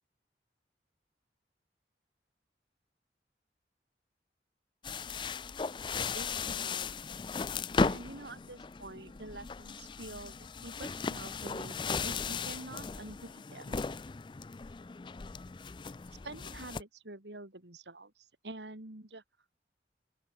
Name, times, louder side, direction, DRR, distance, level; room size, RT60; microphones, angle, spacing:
sound 1, 4.8-16.8, left 4 dB, 25° left, 0.4 m, -37 dB
voice 1, 5.9-6.9 7.8-13.8 16.1-19.2, right 2 dB, 80° right, 2.9 m, -47 dB
open air
head